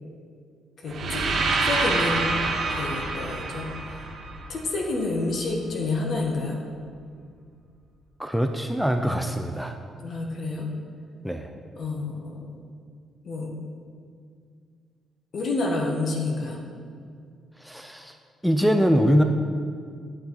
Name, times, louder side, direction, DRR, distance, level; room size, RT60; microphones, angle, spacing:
voice 1, 0.8-1.2 1.6-2.3 2.7-3.7 4.5-6.6 10.0-10.7 11.8-12.5 13.2-13.5 15.3-16.6, left 3 dB, 55° left, 0 dB, 1.6 m, -28 dB
sound 1, 0.9-4.9, right 3 dB, 60° right, 1.5 m, -27 dB
voice 2, 8.2-9.8 11.2-11.5 17.6-18.1 18.4-19.2, equal, ahead, 5 dB, 0.5 m, -23 dB
8.8 x 8.4 x 4.0 m, 2.2 s
cardioid pair, 90°, 0 cm